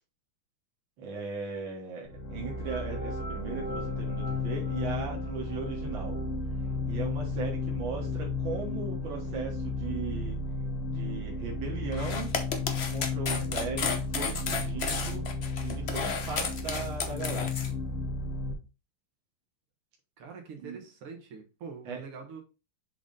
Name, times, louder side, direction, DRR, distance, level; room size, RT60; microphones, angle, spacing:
voice 1, 1.0-6.2 6.9-10.4 10.9-12.3 12.9-15.3 15.6-17.5 20.6-20.8 21.9-22.0, right 4 dB, 65° right, -1 dB, 2.2 m, -37 dB
sound 1, 2.1-18.5, left 3 dB, 90° left, 2.4 m, -33 dB
sound 2, 11.9-17.7, left 5 dB, 60° left, 0.6 m, -33 dB
voice 2, 20.2-22.4, right 5 dB, 80° right, 3 dB, 2.4 m, -44 dB
7.1 x 3.9 x 3.9 m, 0.29 s
omnidirectional pair, 2.4 m